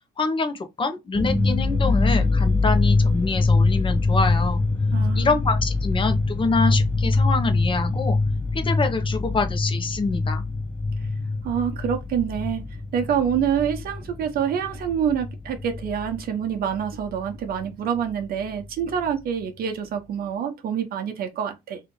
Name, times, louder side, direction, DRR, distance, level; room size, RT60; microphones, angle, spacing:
voice 1, 0.2-4.6 5.1-8.2 8.5-10.4, left 3 dB, 30° left, 1.1 m, -25 dB
sound 1, 1.1-16.2 16.5-17.6 18.0-18.1 18.4-19.1, left 3 dB, 10° left, 0.8 m, -24 dB
voice 2, 4.9-5.3 11.4-12.6 12.9-21.8, right 8 dB, 60° right, 1.0 m, -26 dB
3.4 x 2.9 x 3.8 m
cardioid pair, 110°, 17 cm